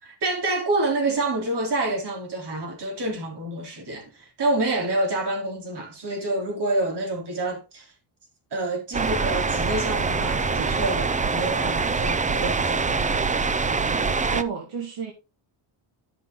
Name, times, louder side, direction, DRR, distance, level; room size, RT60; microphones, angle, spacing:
voice 1, 0.0-7.9 8.5-13.1, right 2 dB, 55° right, 3.8 m, -27 dB
sound 1, 8.9-14.4, right 4 dB, 15° right, 0.4 m, -24 dB
voice 2, 14.3-15.1, right 6 dB, 80° right, 2.2 m, -30 dB
11.5 x 5.7 x 3.9 m
cardioid pair, 130°, 49 cm